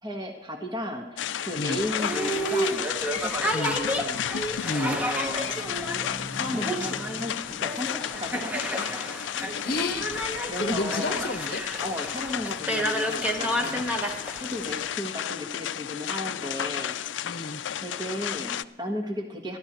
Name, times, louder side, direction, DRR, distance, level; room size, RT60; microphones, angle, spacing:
voice 1, 0.0-2.8 3.1-4.2 4.7-5.6 6.4-8.9 10.4-11.3 11.8-14.1 14.4-17.0 17.8-19.6, left 1 dB, 25° right, 2 dB, 1.4 m, -35 dB
sound 1, 1.2-18.6, left 10 dB, 75° left, 0.4 m, -33 dB
Boat Water vehicle, 1.7-14.9, equal, 10° right, 1.2 m, -31 dB
sound 2, 3.9-11.2, equal, 55° right, 6.6 m, -48 dB
voice 2, 4.6-5.0 9.6-10.1 10.6-11.6 13.6-13.8 17.2-17.6, left 2 dB, 55° left, 8 dB, 0.9 m, -30 dB
28.0 x 11.5 x 3.1 m, 0.92 s
head